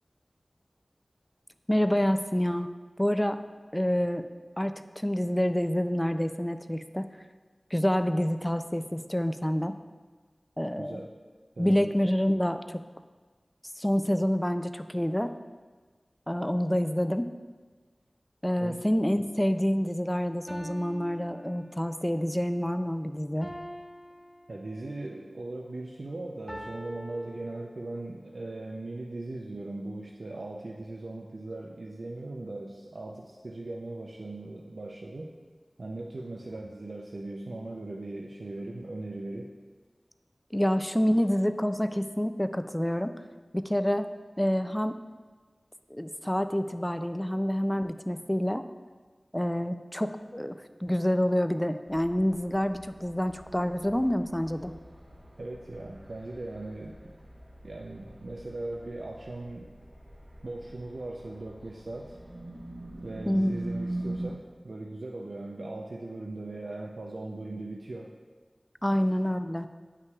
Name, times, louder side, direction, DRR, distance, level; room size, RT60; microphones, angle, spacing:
voice 1, 1.7-2.7 3.0-3.4 3.7-4.2 4.6-7.1 7.7-9.8 10.6-11.0 11.6-12.8 13.8-15.3 16.3-17.3 18.4-23.5 40.5-43.1 43.5-44.1 44.4-45.0 45.9-48.6 49.3-54.7 63.3-63.5 68.8-69.7, equal, 15° left, 10 dB, 0.3 m, -27 dB
voice 2, 10.8-11.1 11.6-11.9 18.6-18.8 24.5-35.3 35.8-39.5 55.4-57.0 57.6-59.7 60.4-62.2 63.0-68.1 68.9-69.0, right 2 dB, 90° right, -1 dB, 0.4 m, -39 dB
sound 1, 19.7-19.8 20.5-22.1 23.4-25.0 26.5-28.1, equal, 5° right, 1.2 m, -45 dB
sound 2, 51.9-64.3, right 1 dB, 55° right, 1.1 m, -42 dB
9.3 x 5.7 x 2.3 m, 1.4 s
wide cardioid pair, 40°, 0 cm